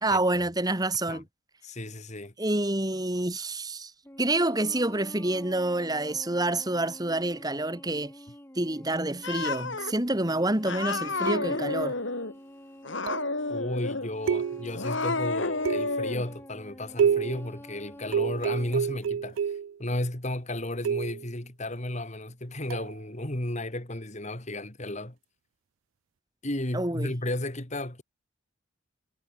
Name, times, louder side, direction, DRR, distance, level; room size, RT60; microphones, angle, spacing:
voice 1, 0.0-1.2 2.4-3.9 4.2-8.1 8.6-11.9 26.7-27.1, right 2 dB, 20° right, 2.2 m, -28 dB
voice 2, 1.6-2.3 13.5-19.4 19.8-25.1 26.4-28.0, left 1 dB, 35° left, 2.7 m, -33 dB
sound 1, 4.0-18.8, equal, 10° left, 2.8 m, -48 dB
Cat, 9.2-9.9 10.6-12.3 12.8-14.1 14.7-16.2, left 3 dB, 65° left, 3.3 m, -30 dB
sound 2, 11.3-11.8 13.1-13.4 14.3-14.9 15.6-16.1 17.0-17.5 18.1-19.8 20.8-21.3 22.7-22.9, right 7 dB, 75° right, 0.3 m, -28 dB
head